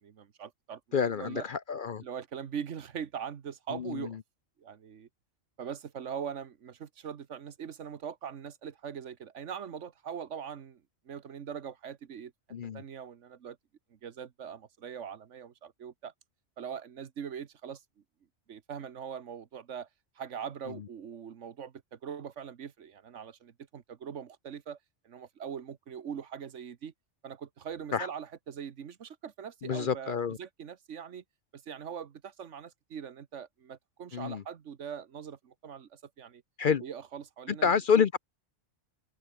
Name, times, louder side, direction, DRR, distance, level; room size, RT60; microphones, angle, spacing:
voice 1, 0.0-1.4 2.0-4.2 4.6-5.1 5.6-12.3 12.7-13.6 13.9-16.1 16.6-17.8 18.5-19.9 20.2-24.8 25.0-26.9 27.2-31.2 31.5-36.4 36.8-38.0, right 7 dB, 75° right, 1.4 m, -42 dB
voice 2, 0.9-2.0 3.7-4.2 12.5-12.8 27.9-28.1 29.6-30.4 34.1-34.4 36.6-36.8 37.5-38.2, left 6 dB, 50° left, 0.7 m, -28 dB
open air
omnidirectional pair, 1.3 m